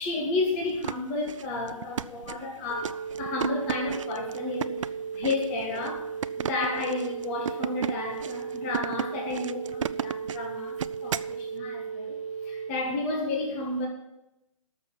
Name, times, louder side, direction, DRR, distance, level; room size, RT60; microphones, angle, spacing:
voice 1, 0.0-6.1 6.4-13.9, left 2 dB, 25° left, 0 dB, 1.8 m, -32 dB
sound 1, 0.6-11.4, right 8 dB, 65° right, 0.5 m, -34 dB
sound 2, 2.7-12.7, right 6 dB, 10° right, 3.5 m, -36 dB
12.0 x 6.8 x 7.1 m, 0.88 s
hypercardioid pair, 160°, 17 cm